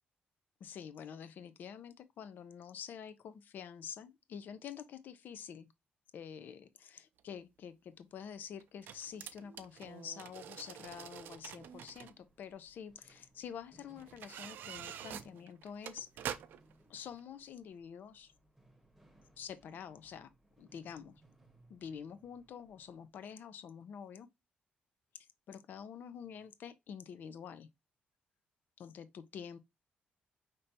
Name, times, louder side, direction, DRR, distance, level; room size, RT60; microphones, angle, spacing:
voice 1, 0.6-5.7 6.1-16.4 16.9-18.3 19.4-20.3 20.6-21.2 21.7-24.3 25.5-27.7 28.8-29.6, left 8 dB, 65° left, 0.5 m, -47 dB
sound 1, 7.2-7.3 8.6-12.1 13.1-13.2 14.0-16.7 17.2-17.3, right 10 dB, 85° right, 0.5 m, -46 dB
sound 2, 10.8-23.1, right 1 dB, ahead, 1.4 m, -67 dB
5.2 x 3.3 x 2.7 m
cardioid pair, 125°, 3 cm